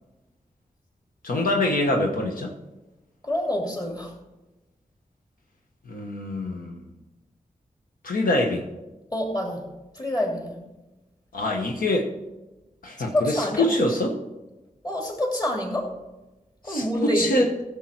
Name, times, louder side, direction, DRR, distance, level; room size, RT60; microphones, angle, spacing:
voice 1, 1.2-2.5 5.9-6.9 8.0-8.7 11.3-12.1 12.8-14.2 16.6-16.8 17.1-17.4, left 1 dB, 85° left, 1 dB, 1.2 m, -24 dB
voice 2, 3.2-4.1 9.1-9.7 9.9-10.6 13.0-13.7 14.8-15.9 16.6-17.4, left 1 dB, 30° left, 0 dB, 2.9 m, -27 dB
15.5 x 7.2 x 4.5 m, 1.0 s
wide cardioid pair, 80°, 14 cm